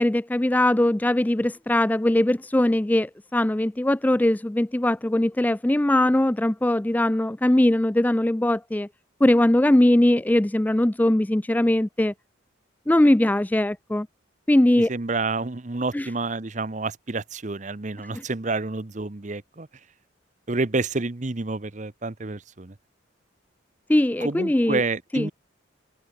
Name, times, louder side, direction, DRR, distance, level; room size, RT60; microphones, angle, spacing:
voice 1, 0.0-8.9 9.2-12.1 12.9-14.1 14.5-14.9 15.9-16.1 18.1-18.2 23.9-24.8 25.1-25.3, left 1 dB, 10° left, 0.3 m, -21 dB
voice 2, 14.9-19.7 20.5-22.7 24.2-25.3, right 3 dB, 40° right, 0.9 m, -29 dB
head